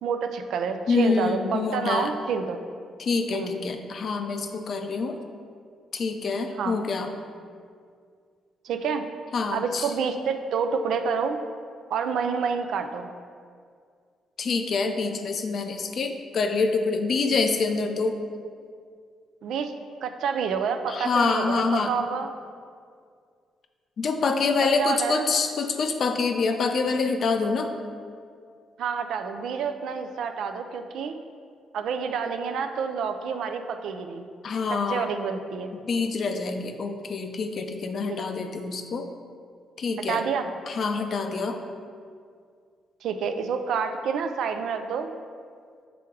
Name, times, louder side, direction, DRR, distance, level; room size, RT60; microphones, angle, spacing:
voice 1, 0.0-2.6 3.3-3.6 6.6-6.8 8.6-9.1 9.5-11.4 11.9-13.1 19.4-19.7 20.0-22.3 24.8-25.3 28.8-31.2 31.7-34.3 34.7-35.7 38.1-38.2 40.1-40.5 43.0-45.1, right 6 dB, 75° right, 7 dB, 0.4 m, -28 dB
voice 2, 0.9-2.1 3.0-5.2 5.9-7.1 9.3-9.9 14.4-18.2 20.9-21.9 24.0-27.7 34.4-35.1 35.8-39.1 39.8-40.2 40.7-41.6, left 4 dB, 55° left, 6 dB, 0.5 m, -26 dB
6.1 x 3.5 x 4.6 m, 2.2 s
cardioid pair, 90°, 0 cm